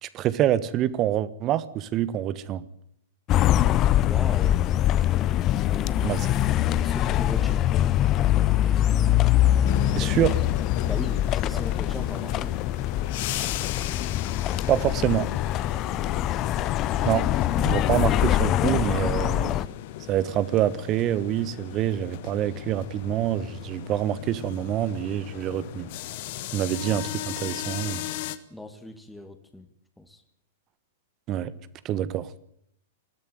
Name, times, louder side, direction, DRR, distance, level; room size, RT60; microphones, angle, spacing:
voice 1, 0.0-2.6 6.0-6.3 9.9-10.3 14.7-15.3 17.0-17.2 17.6-19.5 20.1-25.9 26.5-28.0 31.3-31.5 31.8-32.3, right 12 dB, 35° right, 16 dB, 1.3 m, -26 dB
sound 1, 3.3-19.7, left 12 dB, 35° left, 0.8 m, -23 dB
voice 2, 4.0-4.6 5.6-6.2 6.8-7.7 10.0-10.4 10.8-12.5 28.5-29.7 30.0-30.2, left 1 dB, 5° left, 6 dB, 2.2 m, -39 dB
sound 2, 9.6-28.4, left 13 dB, 50° left, 1.3 m, -37 dB
20.5 x 14.5 x 9.5 m, 0.72 s
figure-of-eight pair, 100°, 0 cm